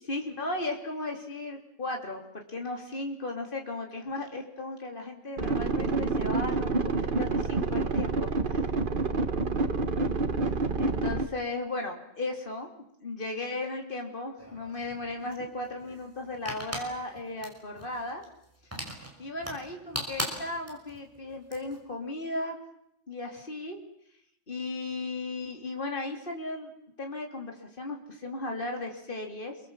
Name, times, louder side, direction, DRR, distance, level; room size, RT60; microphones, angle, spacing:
voice 1, 0.0-8.6 10.8-12.7 13.0-18.2 19.2-22.6 23.1-23.8 24.5-26.7 27.0-29.6, left 2 dB, 45° left, 2 dB, 3.3 m, -36 dB
sound 1, 5.4-11.3, right 3 dB, 45° right, 1.5 m, -28 dB
sound 2, 14.4-21.8, equal, 10° right, 5.5 m, -40 dB
28.0 x 23.5 x 7.5 m, 0.77 s
omnidirectional pair, 1.3 m